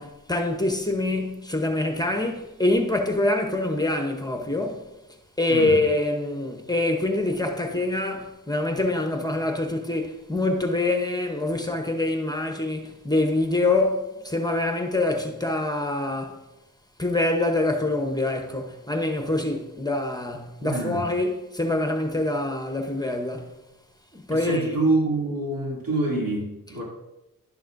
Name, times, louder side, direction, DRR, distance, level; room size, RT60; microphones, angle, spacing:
voice 1, 0.0-4.9 5.4-16.4 17.0-23.5 24.1-24.7, left 2 dB, 10° left, 0.9 m, -25 dB
voice 2, 5.5-5.8 20.6-21.0 24.3-26.8, right 2 dB, 80° right, 2.8 m, -26 dB
11.5 x 7.0 x 2.6 m
wide cardioid pair, 85°, 34 cm